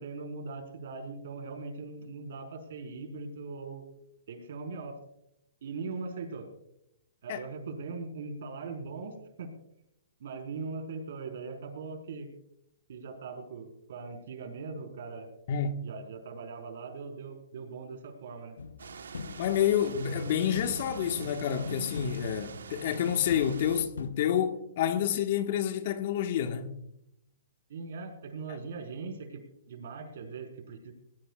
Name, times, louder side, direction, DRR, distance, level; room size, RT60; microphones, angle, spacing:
voice 1, 0.0-3.8 4.3-4.9 5.6-6.5 7.2-9.5 10.2-12.3 12.9-15.3 15.8-18.6 27.7-29.4 29.7-30.9, right 4 dB, 65° right, 4.6 m, -40 dB
voice 2, 15.5-15.8 19.4-26.8 28.5-28.6, left 9 dB, 50° left, 1.5 m, -29 dB
sound 1, 18.6-19.8 20.5-21.2 21.6-22.7 22.9-24.1, left 5 dB, 80° left, 1.0 m, -41 dB
sound 2, 18.8-23.9, right 5 dB, 80° right, 1.2 m, -43 dB
20.0 x 19.0 x 2.4 m
hypercardioid pair, 135°, 0 cm